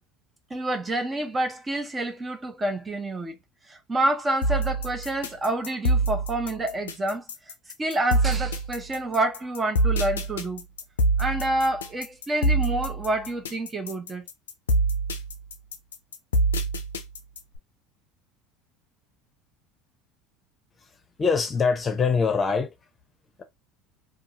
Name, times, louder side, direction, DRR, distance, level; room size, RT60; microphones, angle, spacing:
voice 1, 0.5-3.4 3.7-7.2 7.8-10.6 11.2-14.2, right 1 dB, 20° right, 0.7 m, -28 dB
sound 1, 4.4-17.6, right 2 dB, 90° left, 0.4 m, -25 dB
voice 2, 21.2-22.7, left 5 dB, 30° left, 0.7 m, -23 dB
2.5 x 2.5 x 2.7 m
hypercardioid pair, 75°, 0 cm